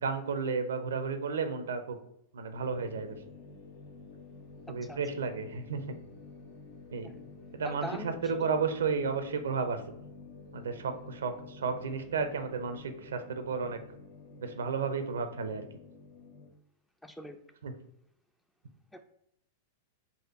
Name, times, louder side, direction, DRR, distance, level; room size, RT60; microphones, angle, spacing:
voice 1, 0.0-2.0 2.3-3.2 4.7-5.8 6.9-7.1 7.5-9.8 10.5-13.8 14.4-15.7 17.6-17.7, right 5 dB, 80° right, 8 dB, 0.5 m, -33 dB
sound 1, 2.5-16.5, left 3 dB, 65° left, 0.8 m, -50 dB
voice 2, 7.6-8.5 17.0-17.4 18.9-19.0, left 1 dB, 5° left, 7 dB, 0.4 m, -42 dB
4.1 x 2.5 x 4.6 m, 0.75 s
hypercardioid pair, 105°, 0 cm